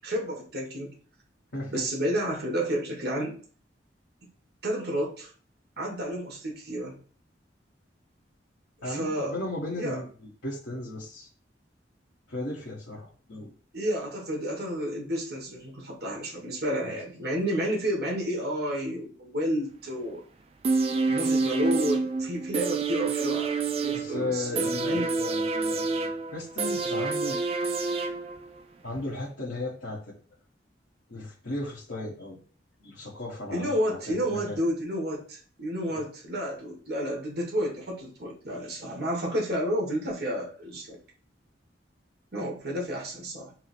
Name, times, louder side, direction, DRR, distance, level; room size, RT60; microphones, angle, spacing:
voice 1, 0.0-0.9 1.7-3.4 4.6-5.3 5.8-7.0 8.8-9.3 9.7-10.0 13.7-20.2 21.1-23.5 23.8-25.1 33.5-41.0 42.3-43.5, equal, 60° right, -2 dB, 1.4 m, -31 dB
voice 2, 1.5-1.8 8.8-11.3 12.3-13.5 16.8-16.9 23.9-27.4 28.8-30.2 31.1-32.4 32.8-34.6 35.9-36.0, left 2 dB, 80° left, -6 dB, 1.1 m, -36 dB
sound 1, 20.6-28.6 29.0-29.1, right 4 dB, 30° right, 0.4 m, -28 dB
4.5 x 2.1 x 4.2 m, 0.42 s
head